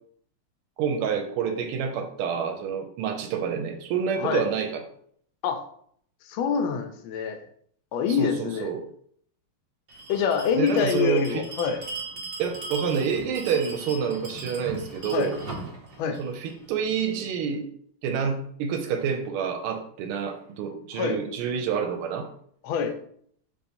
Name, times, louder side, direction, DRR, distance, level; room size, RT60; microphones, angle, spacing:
voice 1, 0.8-4.8 8.2-8.8 10.6-11.5 12.4-15.4 16.2-17.6 18.0-22.3, right 7 dB, 85° right, 4 dB, 1.5 m, -28 dB
voice 2, 6.3-7.4 7.9-8.7 10.1-11.8 15.1-15.3 16.0-16.2 20.9-21.2 22.6-23.0, left 7 dB, 75° left, 6 dB, 1.4 m, -25 dB
Bell, 9.9-17.1, right 2 dB, 50° right, 0.5 m, -39 dB
5.4 x 3.5 x 2.7 m, 0.63 s
omnidirectional pair, 2.4 m